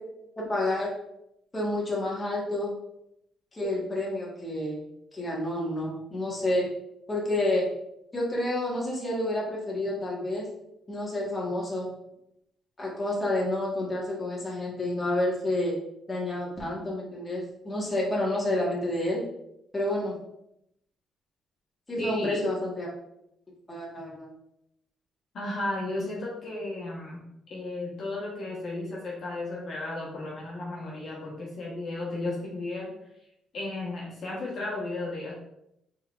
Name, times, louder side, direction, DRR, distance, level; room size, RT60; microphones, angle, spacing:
voice 1, 0.4-0.9 1.5-2.8 3.5-4.8 5.1-6.7 7.1-7.7 8.1-10.5 10.9-11.9 12.8-15.8 16.1-19.2 19.7-20.1 21.9-22.9 23.7-24.3, left 1 dB, 20° left, -5 dB, 1.4 m, -29 dB
voice 2, 22.0-22.4 25.3-27.2 27.5-32.9 33.5-35.3, left 2 dB, 55° left, -4 dB, 1.2 m, -34 dB
3.9 x 3.7 x 2.4 m, 0.79 s
cardioid pair, 90°, 0 cm